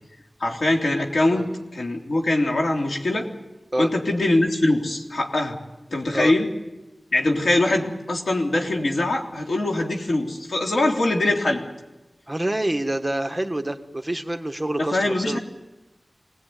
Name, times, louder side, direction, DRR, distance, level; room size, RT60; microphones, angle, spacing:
voice 1, 0.4-3.3 3.8-5.6 5.9-6.5 7.1-11.6 14.8-15.4, left 2 dB, 85° left, 1 dB, 3.3 m, -22 dB
voice 2, 12.3-15.4, right 1 dB, 15° right, 5 dB, 1.6 m, -27 dB
24.5 x 19.0 x 9.3 m, 1.1 s
wide cardioid pair, 70°, 0 cm